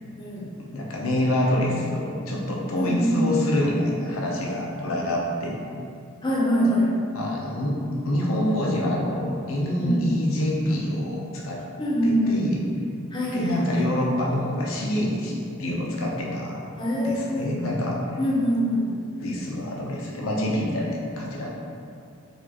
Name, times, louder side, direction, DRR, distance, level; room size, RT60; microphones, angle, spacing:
voice 1, 0.6-5.6 7.1-11.6 12.0-12.6 13.3-16.7 17.0-18.0 19.2-21.5, left 1 dB, 85° left, -2 dB, 0.6 m, -26 dB
voice 2, 2.7-3.4 6.2-6.9 9.8-10.0 11.8-12.4 13.1-13.5 16.8-17.5 18.2-18.9, equal, 20° left, -6 dB, 0.6 m, -24 dB
4.3 x 2.4 x 2.9 m, 2.4 s
head